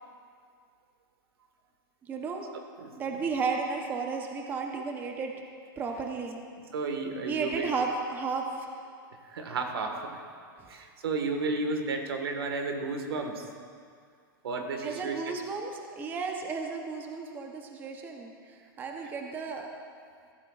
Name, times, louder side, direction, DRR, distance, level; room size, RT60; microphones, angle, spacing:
voice 1, 2.0-2.4 3.0-5.3 5.8-6.4 7.3-8.7 14.8-19.7, right 4 dB, 15° right, 2 dB, 0.8 m, -33 dB
voice 2, 6.7-7.7 9.2-10.1 10.7-13.5 14.4-15.2, right 3 dB, 90° right, 4 dB, 1.5 m, -32 dB
14.5 x 12.5 x 2.4 m, 2.2 s
supercardioid pair, 155°, 12 cm